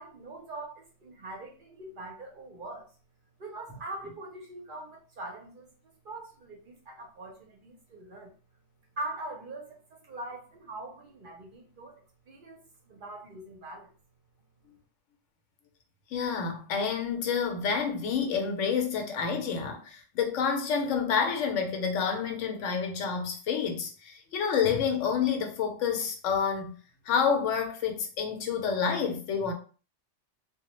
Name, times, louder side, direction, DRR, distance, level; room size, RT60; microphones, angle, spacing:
voice 1, 0.0-2.9 3.4-5.7 6.0-8.3 9.0-13.9, right 2 dB, 55° right, 0.6 m, -42 dB
voice 2, 16.1-26.7 27.1-29.5, left 6 dB, 80° left, 0.9 m, -29 dB
2.1 x 2.1 x 2.9 m
omnidirectional pair, 1.3 m